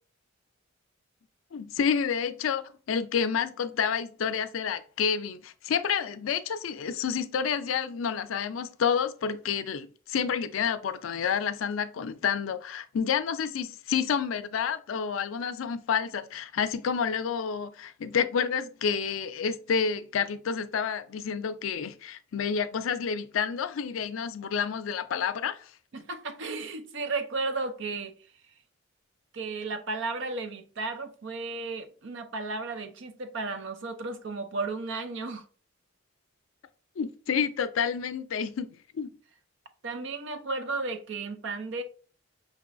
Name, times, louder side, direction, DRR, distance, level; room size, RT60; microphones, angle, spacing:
voice 1, 1.5-25.7 37.0-38.7 38.9-39.1, left 7 dB, 85° left, 0.4 m, -29 dB
voice 2, 25.9-28.2 29.3-35.4 39.8-41.8, right 3 dB, 65° right, 0.6 m, -34 dB
5.2 x 3.0 x 2.5 m
head